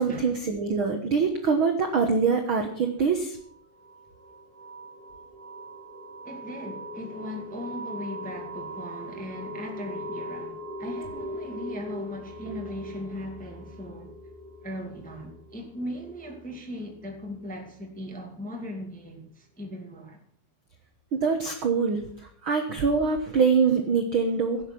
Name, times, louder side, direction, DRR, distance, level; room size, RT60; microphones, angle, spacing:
voice 1, 0.0-3.4 21.1-22.0 22.4-24.6, right 5 dB, 60° right, 1.4 m, -24 dB
sound 1, 3.4-17.8, equal, 35° right, 0.9 m, -40 dB
voice 2, 6.2-14.1 14.6-20.2, left 1 dB, 5° left, 1.3 m, -38 dB
16.5 x 9.1 x 6.0 m
omnidirectional pair, 4.0 m